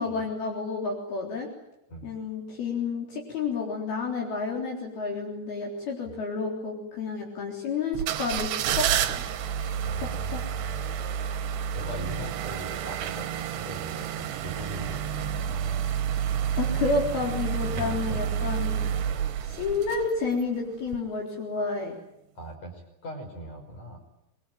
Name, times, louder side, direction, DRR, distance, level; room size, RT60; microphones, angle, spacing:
voice 1, 0.0-1.5 2.0-8.5 8.7-9.2 10.3-10.4 16.6-18.8 19.4-22.0, left 4 dB, 65° left, -1 dB, 5.6 m, -30 dB
sound 1, 7.9-20.4 20.9-21.0, right 9 dB, 85° right, 3.4 m, -30 dB
voice 2, 9.8-10.9 11.7-15.9 17.7-18.2 22.4-24.0, right 1 dB, 40° left, 4 dB, 6.5 m, -40 dB
25.0 x 22.5 x 9.3 m, 0.85 s
omnidirectional pair, 4.7 m